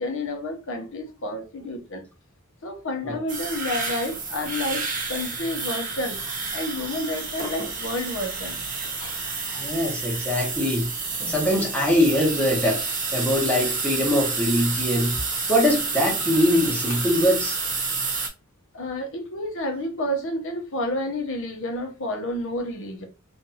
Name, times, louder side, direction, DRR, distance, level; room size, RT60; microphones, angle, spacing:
voice 1, 0.0-2.0 2.6-4.8 5.1-9.8 11.2-11.3 16.9-17.0 18.7-23.0, left 1 dB, 65° left, 0.8 m, -30 dB
sound 1, 3.3-18.3, right 4 dB, 40° right, 0.8 m, -29 dB
voice 2, 9.6-10.9 11.3-12.8 13.1-15.2 15.5-17.6, left 1 dB, 5° left, 1.0 m, -22 dB
2.6 x 2.3 x 2.7 m
head